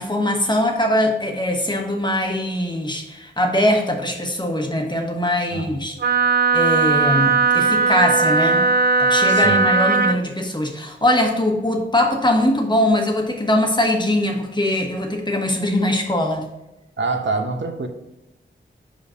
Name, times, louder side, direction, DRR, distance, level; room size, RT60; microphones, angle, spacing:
voice 1, 0.0-6.0 6.5-8.7 9.0-16.5, left 1 dB, 20° left, 2 dB, 1.2 m, -21 dB
Wind instrument woodwind instrument, 6.0-10.2, right 4 dB, 50° right, 0.4 m, -18 dB
voice 2, 9.3-9.7 17.0-17.9, right 3 dB, 70° right, 6 dB, 0.8 m, -25 dB
5.1 x 5.1 x 5.0 m, 0.93 s
wide cardioid pair, 75°, 20 cm